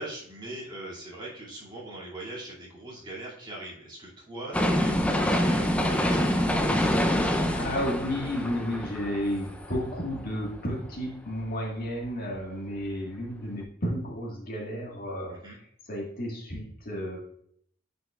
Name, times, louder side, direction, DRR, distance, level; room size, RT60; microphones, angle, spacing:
voice 1, 0.0-6.9 15.3-15.6, right 1 dB, 25° right, -6 dB, 2.5 m, -41 dB
sound 1, 4.5-10.5 10.9-11.0, equal, 5° left, 0.5 m, -26 dB
voice 2, 7.5-17.2, equal, 50° left, -2 dB, 1.7 m, -32 dB
10.0 x 5.2 x 2.4 m, 0.65 s
head